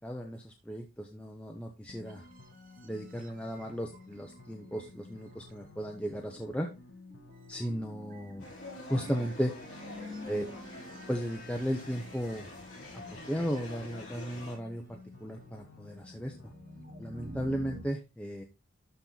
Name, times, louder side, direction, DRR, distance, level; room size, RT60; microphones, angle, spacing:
voice 1, 0.0-2.2 2.8-6.7 7.5-8.4 8.9-9.5 10.3-10.5 11.1-12.5 13.3-16.3 17.0-18.4, equal, 5° left, 2 dB, 0.8 m, -35 dB
sound 1, 1.9-17.9, left 3 dB, 85° left, 1.1 m, -54 dB
sound 2, 2.0-17.8, right 2 dB, 40° right, 1.0 m, -52 dB
sound 3, 8.4-14.6, left 2 dB, 40° left, 5.9 m, -46 dB
12.0 x 4.4 x 4.0 m, 0.27 s
head